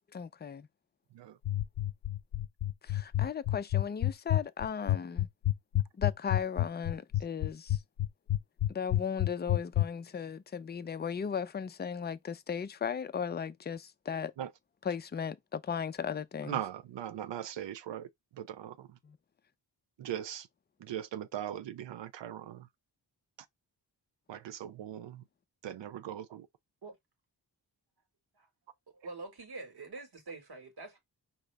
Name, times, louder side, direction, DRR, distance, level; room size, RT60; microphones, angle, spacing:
voice 1, 0.1-0.7 2.8-5.3 5.9-7.8 8.7-14.3 14.9-16.6 19.0-19.2, left 7 dB, 25° left, 0.4 m, -36 dB
sound 1, 1.4-9.9, left 13 dB, 70° left, 0.6 m, -28 dB
voice 2, 16.4-19.0 20.0-20.5 20.8-22.7 24.3-25.2 25.6-26.5, right 10 dB, 75° right, 0.5 m, -40 dB
voice 3, 28.9-31.0, right 3 dB, 60° right, 1.7 m, -45 dB
5.1 x 2.8 x 3.3 m
wide cardioid pair, 95°, 43 cm